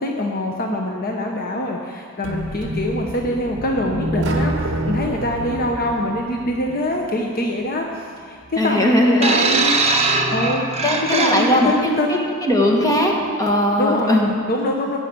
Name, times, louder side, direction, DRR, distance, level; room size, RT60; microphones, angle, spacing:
voice 1, 0.0-4.5 4.9-9.8 10.3-10.7 11.1-12.3 13.8-14.2 14.5-15.0, left 1 dB, 45° left, 1 dB, 0.9 m, -24 dB
sound 1, 2.2-7.2, right 1 dB, 60° right, 1.0 m, -27 dB
voice 2, 8.6-9.4 10.8-12.0 12.4-13.1 13.4-14.3, left 1 dB, 15° left, 0 dB, 1.6 m, -18 dB
sound 2, 9.2-11.8 12.7-12.9, right 3 dB, 30° right, 1.0 m, -20 dB
15.0 x 5.6 x 8.5 m, 2.1 s
head